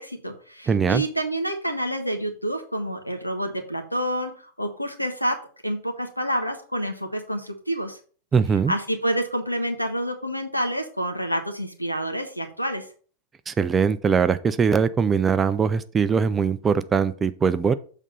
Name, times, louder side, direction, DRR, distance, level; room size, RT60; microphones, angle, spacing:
voice 1, 0.0-4.3 4.6-5.4 5.6-8.0 8.7-12.9, right 1 dB, 90° left, 5 dB, 1.2 m, -28 dB
voice 2, 0.7-1.0 8.3-8.7 13.5-17.7, right 6 dB, 20° right, 14 dB, 0.5 m, -21 dB
7.2 x 4.1 x 5.3 m, 0.42 s
figure-of-eight pair, 90°, 0 cm